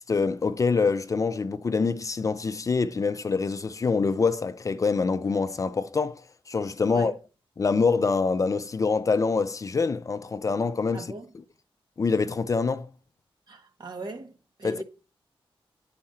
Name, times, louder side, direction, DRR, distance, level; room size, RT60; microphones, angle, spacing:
voice 1, 0.1-6.2 6.5-7.1 7.6-11.1 12.0-12.9 14.6-14.8, left 4 dB, 35° left, 0.5 m, -25 dB
voice 2, 10.9-11.3 13.5-14.8, right 2 dB, 50° right, 1.7 m, -39 dB
10.5 x 4.7 x 4.3 m
wide cardioid pair, 140°, 10 cm